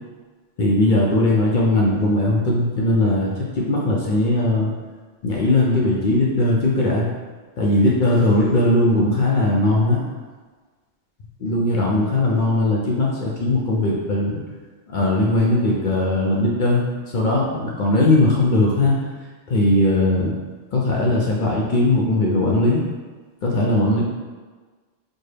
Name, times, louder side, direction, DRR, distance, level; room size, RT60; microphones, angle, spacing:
voice 1, 0.6-4.7 5.2-7.1 7.6-10.0 11.4-14.4 14.9-18.9 19.5-20.3 20.7-22.8 23.4-24.0, left 2 dB, 55° left, -3 dB, 0.6 m, -19 dB
4.3 x 2.0 x 3.2 m, 1.4 s
omnidirectional pair, 1.2 m